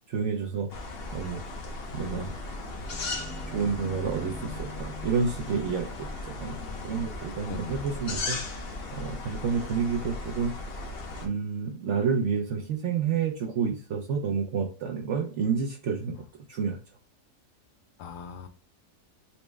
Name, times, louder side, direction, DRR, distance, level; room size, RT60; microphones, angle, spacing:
voice 1, 0.1-0.7 1.1-1.4 1.9-2.3 3.5-6.6 6.8-8.4 8.9-10.5 11.2-16.2 16.5-16.8, right 6 dB, 75° right, 2 dB, 0.6 m, -29 dB
sound 1, 0.7-11.3, left 2 dB, 60° left, 0.6 m, -37 dB
sound 2, 2.4-7.4, left 3 dB, 25° right, 0.6 m, -46 dB
voice 2, 6.3-7.1 7.5-7.9 18.0-18.5, left 6 dB, 85° left, 9 dB, 1.2 m, -43 dB
4.2 x 2.1 x 3.2 m, 0.37 s
omnidirectional pair, 1.7 m